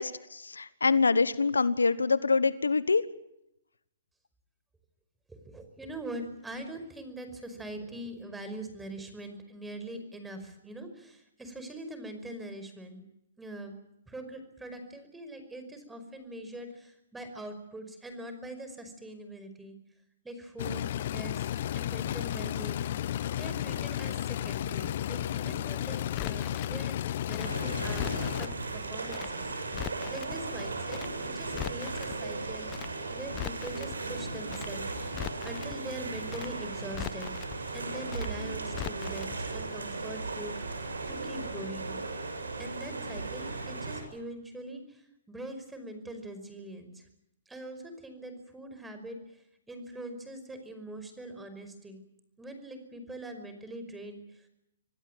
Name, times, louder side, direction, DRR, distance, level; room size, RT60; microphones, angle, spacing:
voice 1, 0.0-3.0, left 4 dB, 90° left, 17 dB, 1.2 m, -25 dB
voice 2, 5.3-13.0 13.4-13.7 14.1-19.8 20.2-21.5 21.7-22.9 23.3-27.0 27.2-32.7 33.1-37.3 37.7-42.0 42.6-47.0 47.5-49.4 49.7-52.1 52.4-54.5, right 1 dB, 10° right, 8 dB, 5.2 m, -43 dB
sound 1, 20.6-28.5, left 11 dB, 55° left, 1.0 m, -33 dB
Crackle, 26.1-26.7 27.3-28.5 29.1-29.3 29.6-30.3 30.9-31.1 31.4-32.1 32.7-32.9 33.2-33.9 34.5-34.7 35.0-35.7 36.3-36.5 36.8-37.5 38.1-38.3 38.6-39.3 39.6-39.7, left 18 dB, 30° left, 0.8 m, -40 dB
sound 2, 27.4-44.0, right 3 dB, 85° right, 6.6 m, -36 dB
26.5 x 17.5 x 9.3 m, 0.83 s
hypercardioid pair, 130°, 0 cm